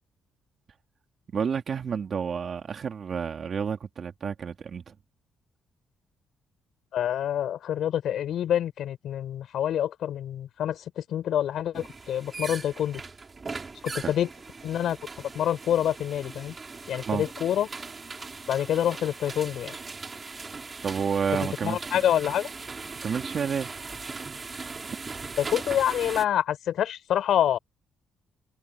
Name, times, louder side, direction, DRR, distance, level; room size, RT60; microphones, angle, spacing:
voice 1, 1.3-5.0 14.0-14.1 17.1-17.3 20.8-22.0 23.0-23.7 24.4-24.6, right 6 dB, 50° right, 3.6 m, -30 dB
voice 2, 6.9-13.0 13.8-14.3 14.6-16.5 16.9-17.7 18.5-19.7 21.6-22.5 25.4-27.6, left 10 dB, 70° left, 4.8 m, -27 dB
sound 1, 11.7-26.3, right 4 dB, 30° right, 5.3 m, -39 dB
cardioid pair, 90°, 0 cm